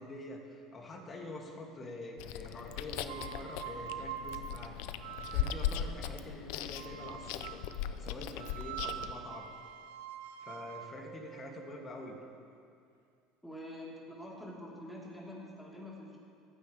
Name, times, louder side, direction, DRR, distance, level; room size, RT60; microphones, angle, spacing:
voice 1, 0.0-7.6 8.0-9.5 10.4-12.2, left 2 dB, 30° left, 0 dB, 2.6 m, -46 dB
Chewing mastication, 2.2-9.1, left 10 dB, 80° left, 0.6 m, -38 dB
sound 1, 3.0-5.9 6.7-7.8 8.4-12.4, right 10 dB, 90° right, 0.8 m, -45 dB
voice 2, 13.4-16.2, left 1 dB, ahead, -5 dB, 3.9 m, -46 dB
25.0 x 9.5 x 3.5 m, 2.4 s
supercardioid pair, 105°, 0 cm